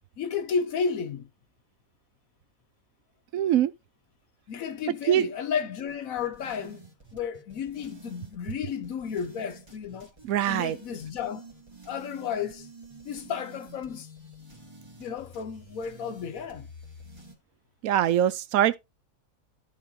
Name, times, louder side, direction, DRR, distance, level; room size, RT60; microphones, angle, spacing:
voice 1, 0.2-1.3 4.5-6.8 7.1-10.1 10.5-11.5 11.8-12.7 13.0-14.1 15.0-16.7, left 6 dB, 80° left, 1.2 m, -32 dB
voice 2, 3.3-3.7 5.1-5.2 10.2-10.8 17.8-18.8, right 11 dB, 85° right, 1.1 m, -23 dB
sound 1, 5.9-17.4, right 1 dB, 20° right, 1.5 m, -49 dB
14.0 x 4.7 x 2.7 m
omnidirectional pair, 1.4 m